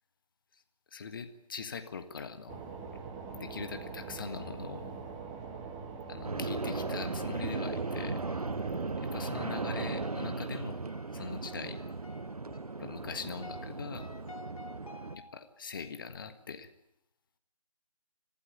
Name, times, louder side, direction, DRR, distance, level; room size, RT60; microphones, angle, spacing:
voice 1, 0.9-2.6 3.3-4.9 6.1-8.2 9.0-10.8 11.1-11.8 12.8-14.1 15.1-16.7, left 5 dB, 35° left, 9 dB, 1.6 m, -42 dB
sound 1, 2.5-10.1, right 5 dB, 10° right, 1.3 m, -43 dB
sound 2, 6.2-15.2, right 3 dB, 75° right, 0.9 m, -37 dB
sound 3, 6.6-15.6, left 2 dB, 65° left, 3.3 m, -52 dB
26.5 x 16.0 x 9.3 m, 0.87 s
figure-of-eight pair, 155°, 19 cm